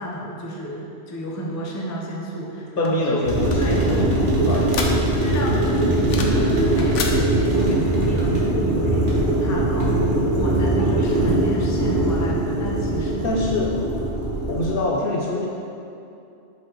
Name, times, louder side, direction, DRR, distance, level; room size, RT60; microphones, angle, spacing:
voice 1, 0.0-3.2 3.6-13.3, equal, 20° left, -3 dB, 0.5 m, -31 dB
sound 1, 2.8-5.3 5.7-6.5 6.7-7.2, left 5 dB, 90° left, 1.0 m, -31 dB
voice 2, 2.8-4.8 10.8-10.9 13.2-13.7 14.5-15.5, left 2 dB, 60° left, -2 dB, 0.7 m, -25 dB
Espresso grande, 3.2-14.7, right 1 dB, 45° right, 1.1 m, -21 dB
7.6 x 4.2 x 3.0 m, 2.6 s
omnidirectional pair, 1.2 m